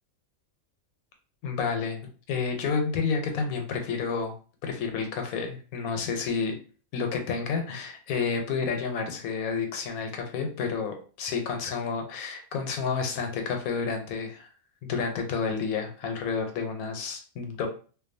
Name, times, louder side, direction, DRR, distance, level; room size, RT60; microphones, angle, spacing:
voice 1, 1.4-2.0 2.3-4.3 4.6-6.5 6.9-14.5 14.8-17.7, left 5 dB, 85° left, 4 dB, 1.0 m, -30 dB
2.5 x 2.2 x 2.5 m, 0.39 s
omnidirectional pair, 1.5 m